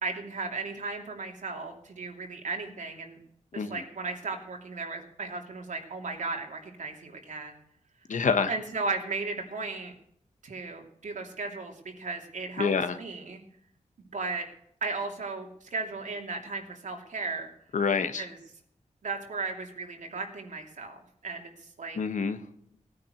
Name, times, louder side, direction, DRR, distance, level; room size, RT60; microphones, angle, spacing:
voice 1, 0.0-3.2 3.5-7.6 8.5-9.9 10.4-13.4 14.1-14.5 14.8-17.5 18.1-18.4 19.0-22.0, right 3 dB, 80° right, 3 dB, 2.9 m, -35 dB
voice 2, 8.1-8.5 12.6-13.0 17.7-18.2 22.0-22.4, left 5 dB, 85° left, 9 dB, 1.4 m, -27 dB
18.0 x 9.6 x 6.4 m, 0.70 s
wide cardioid pair, 95°, 13 cm